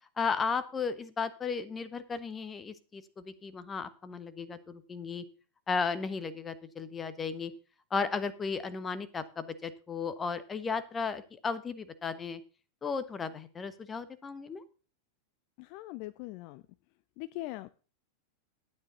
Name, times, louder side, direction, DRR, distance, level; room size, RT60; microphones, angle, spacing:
voice 1, 0.2-5.2 5.7-7.5 7.9-12.4 12.8-14.6, left 5 dB, 20° left, 14 dB, 1.3 m, -35 dB
voice 2, 15.6-16.6 17.2-17.7, left 18 dB, 45° left, 15 dB, 0.6 m, -41 dB
12.5 x 9.4 x 4.0 m, 0.35 s
figure-of-eight pair, 90°, 0 cm